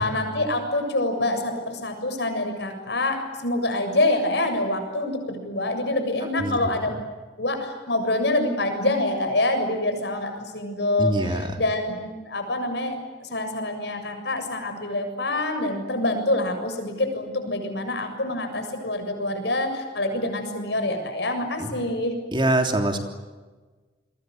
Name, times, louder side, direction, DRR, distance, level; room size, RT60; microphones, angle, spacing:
voice 1, 0.0-6.9 7.4-22.2, left 2 dB, 70° left, 6 dB, 7.2 m, -26 dB
voice 2, 11.0-11.5 21.6-21.7 22.3-23.0, right 1 dB, 25° right, 4 dB, 3.3 m, -23 dB
29.5 x 23.5 x 8.0 m, 1.3 s
head